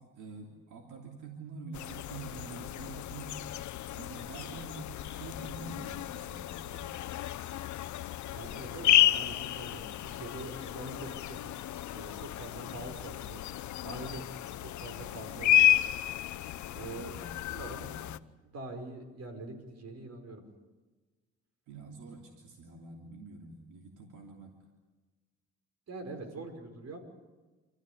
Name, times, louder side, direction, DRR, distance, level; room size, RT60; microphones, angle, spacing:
voice 1, 0.0-3.4 3.9-7.0 12.4-12.8 16.9-18.4 21.7-24.6, right 4 dB, 85° right, 1 dB, 3.1 m, -47 dB
sound 1, 1.7-18.2, left 13 dB, 70° left, 0.8 m, -32 dB
voice 2, 8.3-11.6 11.9-13.4 13.8-14.2 14.6-15.7 16.7-17.2 17.5-17.9 18.4-20.4 25.9-27.0, right 2 dB, 55° right, 5 dB, 5.3 m, -44 dB
27.5 x 14.5 x 9.6 m, 1.3 s
cardioid pair, 90°, 30 cm